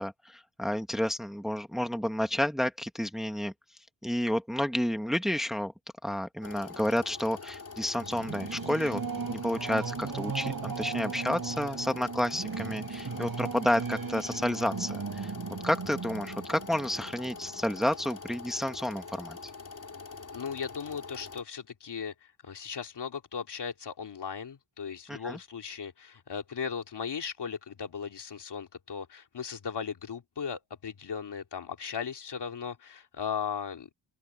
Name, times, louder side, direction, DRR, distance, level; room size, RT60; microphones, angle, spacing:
voice 1, 0.0-3.5 4.0-5.7 6.0-9.0 9.3-15.3 15.6-19.5 25.1-25.4, left 1 dB, ahead, 1.5 m, -30 dB
sound 1, 6.4-21.4, left 4 dB, 45° left, 3.9 m, -44 dB
Singing / Musical instrument, 8.0-18.1, right 5 dB, 50° right, 5.9 m, -37 dB
voice 2, 20.3-33.9, left 7 dB, 65° left, 3.1 m, -37 dB
open air
wide cardioid pair, 125°, 44 cm